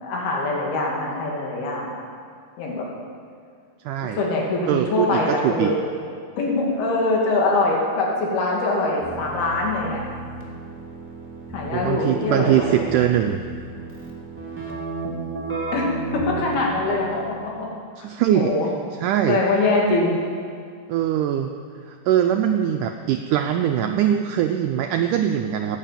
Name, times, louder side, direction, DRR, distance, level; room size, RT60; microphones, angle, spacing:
voice 1, 0.0-2.0 2.6-2.9 4.0-5.8 6.4-10.0 11.5-12.8 15.7-15.9 16.1-17.7 18.3-18.7 19.3-20.2, left 2 dB, 85° left, -2 dB, 4.2 m, -23 dB
voice 2, 3.8-4.2 4.7-5.7 11.7-13.4 18.0-18.5 19.0-19.4 20.9-21.5 21.9-25.8, right 10 dB, 90° right, 5 dB, 1.8 m, -22 dB
Keyboard (musical), 9.0-17.4, right 3 dB, 5° right, 1.5 m, -34 dB
15.5 x 10.0 x 7.4 m, 2.2 s
omnidirectional pair, 4.3 m